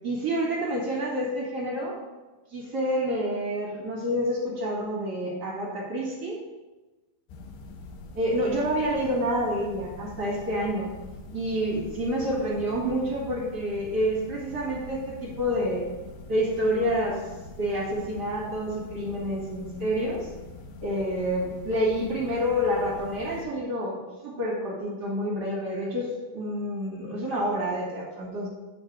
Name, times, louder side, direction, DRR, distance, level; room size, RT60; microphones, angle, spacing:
voice 1, 0.0-2.0 2.5-6.4 8.1-10.9 11.3-15.8 16.3-17.2 17.6-20.3 20.8-28.5, equal, 40° right, -5 dB, 1.7 m, -28 dB
sound 1, 7.3-23.5, left 2 dB, 75° left, 2.2 m, -44 dB
9.5 x 3.9 x 6.1 m, 1.2 s
omnidirectional pair, 4.2 m